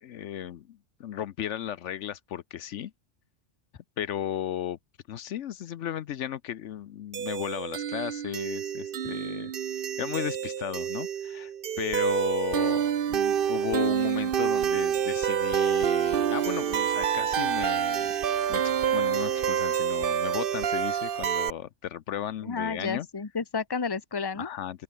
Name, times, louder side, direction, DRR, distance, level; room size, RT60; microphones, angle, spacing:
voice 1, 0.0-2.9 4.0-4.8 5.1-9.5 10.0-18.1 18.5-23.1 24.3-24.8, left 10 dB, 75° left, 1.0 m, -35 dB
sound 1, 7.1-21.5, right 9 dB, 50° right, 0.9 m, -27 dB
voice 2, 22.5-24.5, left 5 dB, 20° left, 1.0 m, -31 dB
open air
omnidirectional pair, 1.3 m